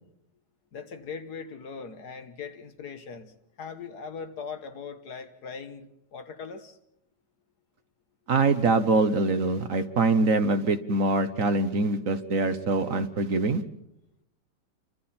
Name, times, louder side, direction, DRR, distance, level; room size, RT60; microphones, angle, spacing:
voice 1, 0.7-6.8, left 5 dB, 65° left, 8 dB, 1.8 m, -40 dB
voice 2, 8.3-13.6, right 3 dB, 50° right, 9 dB, 1.3 m, -24 dB
30.0 x 24.5 x 4.3 m, 0.81 s
omnidirectional pair, 1.9 m